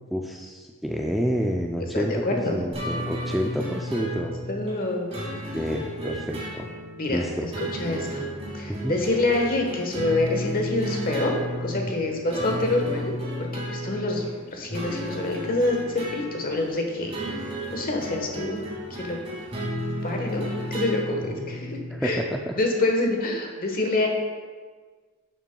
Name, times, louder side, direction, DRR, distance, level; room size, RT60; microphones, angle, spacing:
voice 1, 0.1-4.3 5.5-6.7 7.1-7.5 8.7-9.0 21.3-21.5 21.9-22.5, equal, ahead, 0 dB, 0.4 m, -29 dB
voice 2, 1.9-2.5 4.5-5.2 7.0-7.3 7.8-8.3 8.5-13.1 13.6-18.6 19.0-19.2 20.0-20.5 20.7-21.2 21.5-22.3 22.6-24.1, left 2 dB, 45° left, 2 dB, 1.2 m, -26 dB
sound 1, 2.7-21.9, equal, 30° right, 2.3 m, -33 dB
11.0 x 7.1 x 2.3 m, 1.5 s
head